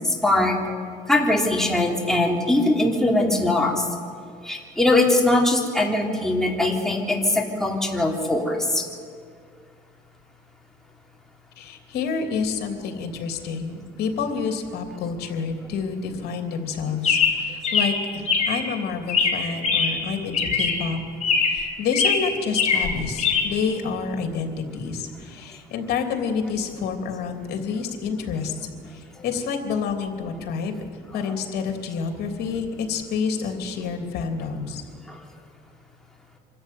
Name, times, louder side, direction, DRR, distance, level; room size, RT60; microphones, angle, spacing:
voice 1, 0.0-0.6 1.1-3.9 4.4-8.8 35.1-35.2, left 2 dB, 5° left, -1 dB, 3.4 m, -21 dB
voice 2, 11.6-21.0 21.3-28.5 28.9-30.8 31.1-34.8, left 5 dB, 70° left, 4 dB, 3.2 m, -28 dB
Chirp tweet, 17.0-18.7 19.1-20.1 20.3-20.9 21.2-21.7 21.9-23.4, left 5 dB, 40° left, 5.8 m, -22 dB
25.5 x 13.5 x 9.3 m, 2.1 s
cardioid pair, 110°, 17 cm